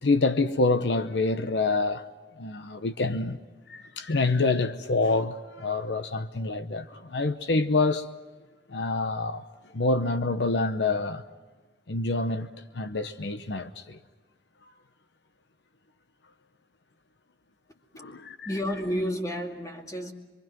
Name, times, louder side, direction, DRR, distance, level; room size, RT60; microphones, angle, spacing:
voice 1, 0.0-2.0 2.4-3.4 3.7-8.1 8.7-9.4 9.7-11.2 11.9-12.5 12.7-14.0 18.0-18.5, left 3 dB, 75° left, 0.9 m, -26 dB
voice 2, 18.4-20.1, equal, 20° left, 2.3 m, -30 dB
26.0 x 24.0 x 6.1 m
head